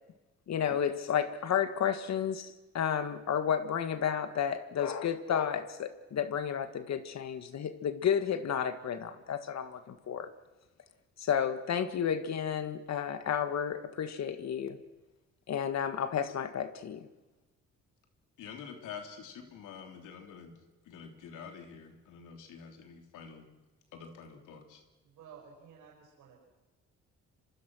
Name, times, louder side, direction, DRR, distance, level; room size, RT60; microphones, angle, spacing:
voice 1, 0.5-10.3 11.2-14.8 15.5-17.1, left 8 dB, 60° left, 10 dB, 1.8 m, -32 dB
voice 2, 18.4-20.5 20.8-23.5 23.9-24.8, left 6 dB, 85° left, 4 dB, 3.4 m, -47 dB
voice 3, 25.0-26.5, right 7 dB, 85° right, -1 dB, 6.0 m, -54 dB
26.0 x 25.0 x 6.3 m, 1.1 s
cardioid pair, 90°, 30 cm